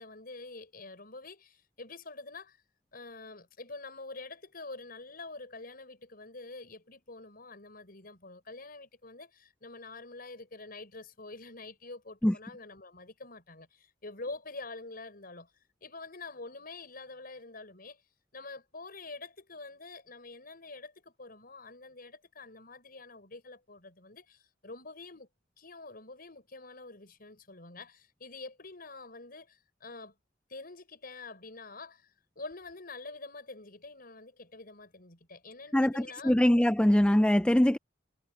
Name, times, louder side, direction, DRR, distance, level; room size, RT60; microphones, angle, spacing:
voice 1, 0.0-2.6 2.9-15.5 15.8-18.0 18.3-25.3 25.6-30.1 30.5-36.3, left 3 dB, 50° left, 6.4 m, -46 dB
voice 2, 35.7-37.8, left 1 dB, 5° left, 0.4 m, -23 dB
head